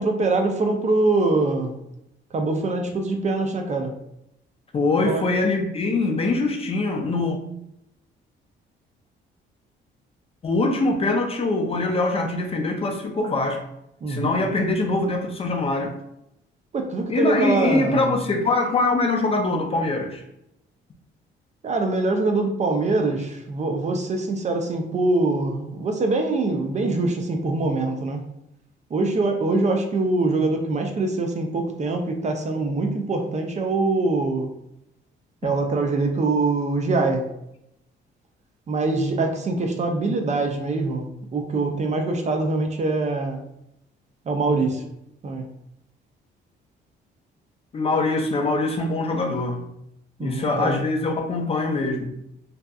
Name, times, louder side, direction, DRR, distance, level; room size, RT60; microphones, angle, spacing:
voice 1, 0.0-1.7 2.3-3.9 5.0-5.2 14.0-14.4 16.7-18.2 21.6-28.2 28.9-34.5 35.4-37.2 38.7-43.4 44.3-44.8 45.2-45.4 50.2-50.9, right 3 dB, 35° right, 0.4 m, -23 dB
voice 2, 4.7-7.4 10.4-13.6 14.1-15.9 17.1-20.2 35.4-35.5 47.7-49.6 50.2-52.1, left 2 dB, 30° left, 0.4 m, -23 dB
2.7 x 2.3 x 2.3 m
cardioid pair, 90°, 20 cm